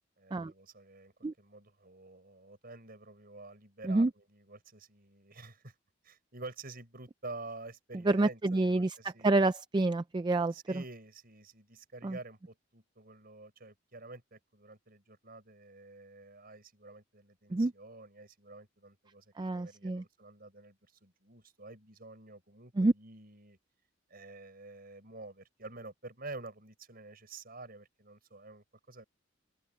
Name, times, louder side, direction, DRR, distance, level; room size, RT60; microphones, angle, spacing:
voice 1, 0.2-5.7 6.0-9.5 10.5-23.6 24.1-29.0, right 2 dB, 50° right, 6.1 m, -49 dB
voice 2, 8.1-8.9 9.2-10.5 12.0-12.1 17.5-17.7 19.4-20.0 22.8-22.9, right 2 dB, 25° right, 0.4 m, -27 dB
open air
head